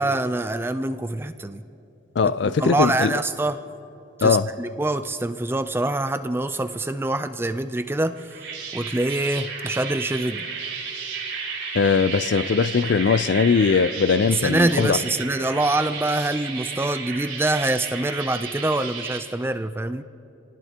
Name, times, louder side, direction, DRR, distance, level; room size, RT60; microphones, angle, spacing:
voice 1, 0.0-1.6 2.4-3.6 4.2-8.2 8.7-10.5 14.3-20.0, right 2 dB, 10° right, 0.4 m, -25 dB
voice 2, 2.2-3.1 4.2-4.5 11.7-15.0, left 5 dB, 60° left, 0.4 m, -20 dB
sound 1, 8.1-19.2, right 5 dB, 75° right, 4.9 m, -33 dB
27.0 x 18.5 x 2.9 m
head